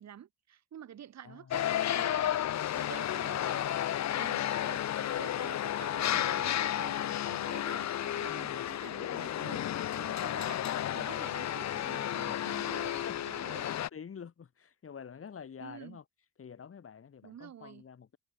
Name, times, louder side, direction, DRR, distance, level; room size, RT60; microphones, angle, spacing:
voice 1, 0.0-2.4 2.7-3.8 4.2-10.6 10.9-13.7 15.6-16.0 17.2-17.8, right 10 dB, 60° right, 3.4 m, -49 dB
voice 2, 1.2-1.6 8.3-8.7 12.2-13.2 13.6-16.0 16.4-18.2, left 7 dB, 45° left, 6.6 m, -48 dB
sound 1, 1.5-13.9, left 11 dB, 65° left, 1.5 m, -32 dB
cardioid pair, 90°, 30 cm